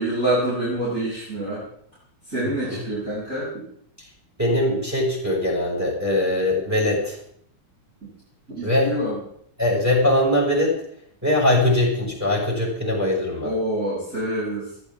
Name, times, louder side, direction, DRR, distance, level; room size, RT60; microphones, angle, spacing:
voice 1, 0.0-1.6 2.3-3.5 8.5-9.2 11.5-11.7 13.4-14.7, right 1 dB, 25° right, -10 dB, 7.8 m, -26 dB
voice 2, 2.4-2.8 4.4-7.2 8.6-8.9 9.6-10.7 11.2-13.5, left 1 dB, 5° right, -1 dB, 6.3 m, -21 dB
21.0 x 15.0 x 3.7 m, 0.67 s
omnidirectional pair, 3.6 m